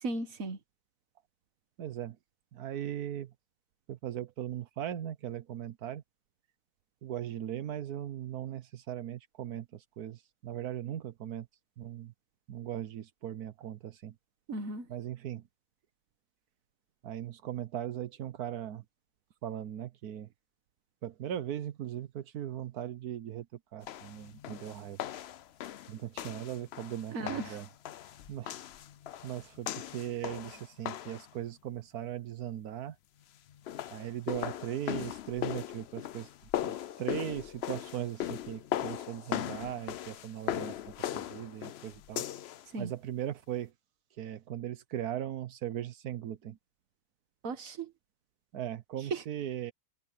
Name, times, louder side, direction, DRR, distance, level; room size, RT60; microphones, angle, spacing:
voice 1, 0.0-0.6 14.5-14.9 27.1-27.6 42.7-42.9 47.4-47.9 49.1-49.2, right 3 dB, 65° right, 1.9 m, -36 dB
voice 2, 1.8-2.2 2.5-3.3 3.9-6.0 7.0-11.5 11.8-12.1 12.5-14.1 14.9-15.4 17.0-18.8 19.4-20.3 21.0-23.5 23.7-25.0 25.9-27.7 28.3-28.6 29.2-33.0 33.9-36.3 36.6-40.7 41.1-42.2 42.8-43.7 44.2-46.6 48.5-49.7, right 11 dB, 85° right, 1.4 m, -38 dB
sound 1, 23.9-31.3 33.5-42.6, left 11 dB, 65° left, 0.7 m, -38 dB
omnidirectional pair, 1.6 m